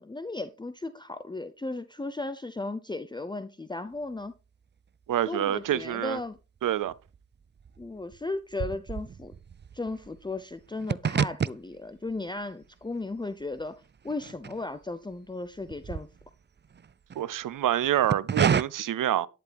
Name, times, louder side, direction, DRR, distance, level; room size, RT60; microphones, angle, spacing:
voice 1, 0.0-4.3 5.2-6.4 7.8-9.3 9.7-16.1, left 2 dB, 15° left, 0.7 m, -36 dB
voice 2, 5.1-6.2 6.6-6.9 17.2-19.3, right 12 dB, 90° right, 0.6 m, -27 dB
sound 1, 5.8-6.6 6.8-15.1 15.4-17.2 17.8-18.6, right 6 dB, 35° right, 0.5 m, -31 dB
11.5 x 10.5 x 3.5 m
cardioid pair, 70°, 31 cm